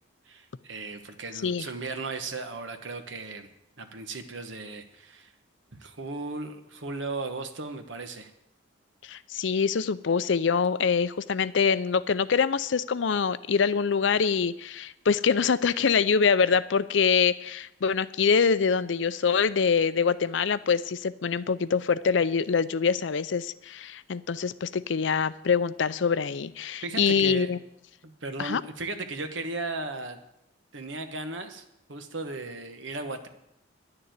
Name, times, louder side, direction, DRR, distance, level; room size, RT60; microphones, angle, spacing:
voice 1, 0.3-3.5 3.8-5.3 5.7-8.3 26.8-27.5 28.0-30.2 30.7-31.6 31.9-33.3, right 3 dB, 70° right, 7 dB, 1.3 m, -36 dB
voice 2, 9.0-27.6 28.4-28.6, left 6 dB, 70° left, 16 dB, 0.5 m, -25 dB
11.0 x 6.8 x 9.4 m, 0.83 s
head